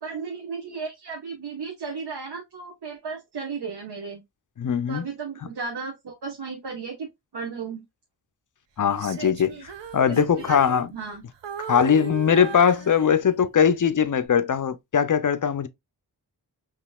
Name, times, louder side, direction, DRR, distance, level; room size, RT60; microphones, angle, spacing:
voice 1, 0.0-4.2 4.9-7.1 7.3-7.8 9.5-9.6 10.1-10.6 10.9-11.2, right 5 dB, 65° right, 1.1 m, -34 dB
voice 2, 4.6-5.1 8.8-9.5 9.9-10.9 11.7-15.7, left 7 dB, 50° left, 0.6 m, -21 dB
Female singing, 8.9-11.2 11.4-13.5 14.0-14.3, right 8 dB, 85° right, 0.7 m, -38 dB
5.5 x 3.0 x 2.2 m
wide cardioid pair, 80°, 42 cm